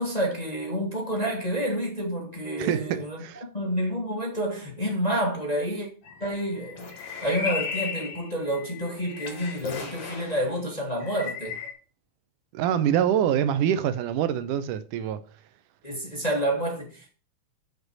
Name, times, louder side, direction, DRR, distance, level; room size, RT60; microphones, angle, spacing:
voice 1, 0.0-3.2 3.5-5.9 6.2-11.6 15.8-17.1, equal, 15° left, 1.7 m, -29 dB
voice 2, 2.6-3.4 12.5-15.2, right 9 dB, 85° right, 2.2 m, -25 dB
sound 1, 6.0-10.5 11.0-11.7, left 5 dB, 50° left, 2.8 m, -36 dB
7.8 x 5.2 x 7.5 m
omnidirectional pair, 3.7 m